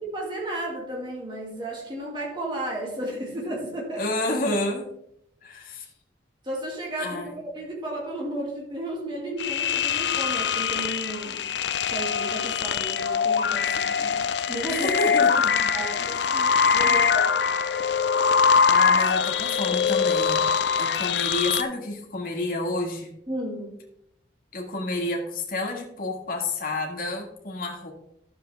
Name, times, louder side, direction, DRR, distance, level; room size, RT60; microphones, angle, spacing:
voice 1, 0.0-4.2 6.4-11.5 11.9-14.9 15.7-17.5 23.3-23.8, right 1 dB, 25° right, -2 dB, 2.3 m, -33 dB
voice 2, 4.0-4.9 5.4-5.9 7.0-7.4 14.7-15.7 18.6-20.5 20.8-23.1 24.5-27.9, left 2 dB, 50° left, 2 dB, 1.7 m, -29 dB
sound 1, 9.4-21.6, left 6 dB, 70° left, 0.4 m, -23 dB
12.0 x 6.9 x 3.4 m, 0.75 s
head